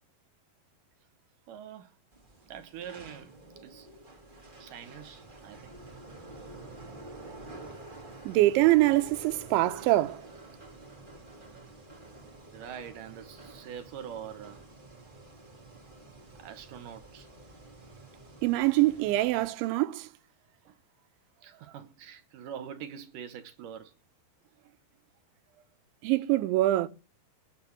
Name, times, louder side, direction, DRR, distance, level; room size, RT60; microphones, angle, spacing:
voice 1, 1.5-1.9 2.5-3.9 4.6-5.8 12.5-14.6 16.4-17.3 20.7-20.8 21.4-23.9, right 8 dB, 70° right, 2.1 m, -44 dB
sound 1, 2.1-19.4, right 2 dB, 40° right, 0.7 m, -49 dB
voice 2, 8.2-10.2 18.4-20.1 26.0-26.9, right 17 dB, 90° right, 3.3 m, -24 dB
21.5 x 7.3 x 6.0 m
omnidirectional pair, 5.2 m